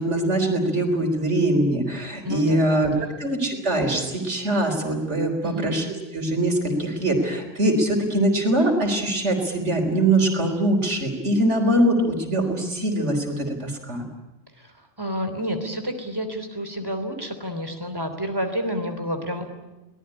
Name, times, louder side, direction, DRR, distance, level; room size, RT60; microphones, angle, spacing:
voice 1, 0.0-5.8 6.1-14.0, right 1 dB, 75° right, 3 dB, 4.2 m, -22 dB
voice 2, 2.2-3.2 5.4-5.7 14.6-19.5, equal, 20° right, 7 dB, 3.3 m, -30 dB
24.0 x 19.0 x 9.9 m, 1.0 s
omnidirectional pair, 1.2 m